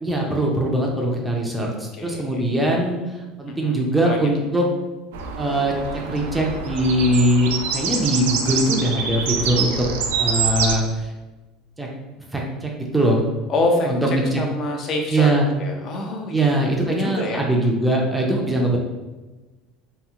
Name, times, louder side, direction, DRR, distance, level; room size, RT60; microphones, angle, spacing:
voice 1, 0.0-4.7 5.4-5.7 6.1-9.9 10.2-11.1 11.8-11.9 12.3-13.2 13.9-14.4 15.1-15.5 16.3-18.8, right 1 dB, 10° right, -1 dB, 0.5 m, -21 dB
voice 2, 3.5-3.8 4.0-4.2 13.5-15.3 15.6-16.6 17.0-17.4, left 2 dB, 45° left, 2 dB, 0.6 m, -26 dB
sound 1, 5.1-10.8, right 6 dB, 85° right, 0.3 m, -26 dB
2.8 x 2.6 x 2.4 m, 1.2 s
supercardioid pair, 95°, 0 cm